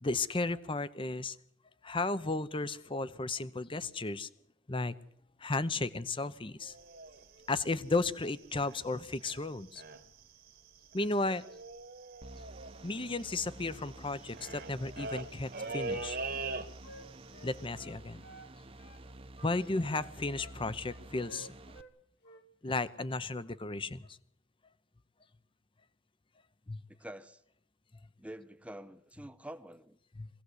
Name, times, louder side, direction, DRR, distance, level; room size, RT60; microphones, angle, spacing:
voice 1, 0.0-1.4 1.8-4.3 4.7-4.9 5.4-6.7 7.5-9.8 10.9-11.4 12.8-16.2 17.4-18.2 19.4-21.5 22.6-24.2 26.7-26.8 30.2-30.3, left 3 dB, 25° left, 0.9 m, -34 dB
sound 1, 6.6-8.9 9.2-9.5 9.8-10.2 10.5-10.6 10.8-17.1 17.4-17.7, right 3 dB, 50° right, 1.6 m, -42 dB
sound 2, 12.2-21.8, right 1 dB, 30° right, 1.0 m, -51 dB
Wind instrument woodwind instrument, 15.5-18.5 18.8-19.0 19.4-21.9 22.2-22.9, right 1 dB, 60° left, 1.8 m, -54 dB
voice 2, 27.0-27.4 28.2-30.0, right 1 dB, 5° right, 0.9 m, -47 dB
23.0 x 17.0 x 8.1 m
head